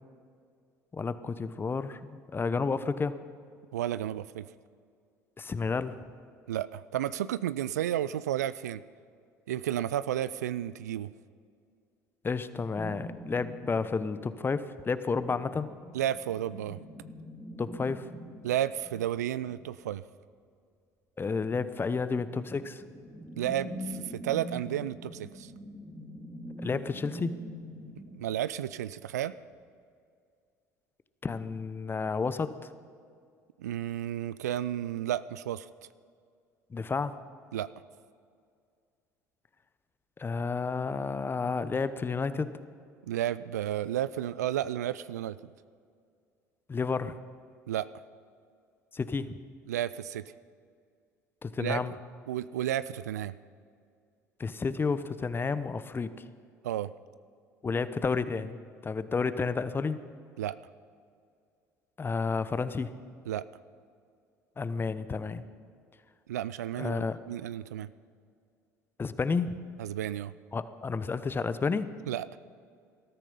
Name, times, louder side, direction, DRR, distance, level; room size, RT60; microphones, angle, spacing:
voice 1, 0.9-3.1 5.4-5.9 12.2-15.7 17.6-18.1 21.2-22.8 26.6-27.3 31.2-32.7 36.7-37.1 40.2-42.5 46.7-47.1 48.9-49.3 51.4-51.9 54.4-56.1 57.6-58.6 58.8-60.0 62.0-62.9 64.6-65.4 66.8-67.2 69.0-69.6 70.5-71.9, left 4 dB, 25° left, 14 dB, 0.9 m, -31 dB
voice 2, 3.7-4.5 6.5-8.8 9.5-11.1 15.9-16.8 18.4-20.0 23.4-25.5 28.0-29.3 33.6-35.7 37.5-37.7 43.0-45.4 47.7-47.9 49.7-50.2 51.6-51.8 52.3-53.3 56.6-56.9 60.4-60.6 63.3-63.5 66.3-67.9 69.8-70.3 72.1-72.3, right 11 dB, 80° right, 17 dB, 0.4 m, -32 dB
sound 1, 12.8-14.6 15.0-19.9 21.9-28.5, equal, ahead, 2.4 m, -44 dB
19.5 x 13.5 x 5.4 m, 2.2 s
figure-of-eight pair, 60°, 9 cm